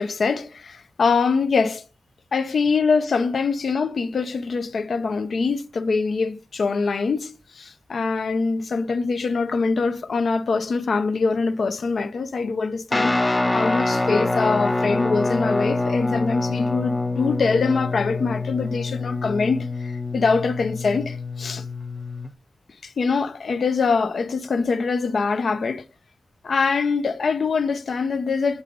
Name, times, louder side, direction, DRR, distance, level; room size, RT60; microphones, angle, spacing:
voice 1, 0.0-1.8 2.3-21.6 22.8-25.8 26.4-28.6, left 4 dB, 70° left, 0.7 m, -24 dB
Guitar, 12.9-22.3, left 2 dB, 20° left, 0.6 m, -25 dB
7.0 x 6.8 x 3.8 m
wide cardioid pair, 110°, 0 cm